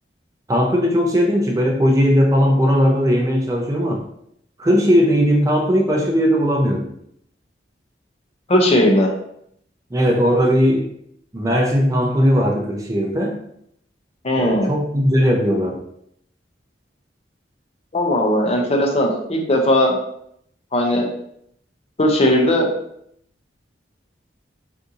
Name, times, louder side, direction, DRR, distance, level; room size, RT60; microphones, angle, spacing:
voice 1, 0.5-4.0 4.6-6.9 9.9-10.9 11.3-13.4 14.4-15.8, equal, 20° right, -1 dB, 0.4 m, -18 dB
voice 2, 8.5-9.1 14.2-14.7 17.9-20.0 20.7-21.1 22.0-22.7, left 1 dB, 35° left, 1 dB, 0.5 m, -17 dB
2.7 x 2.6 x 3.6 m, 0.71 s
head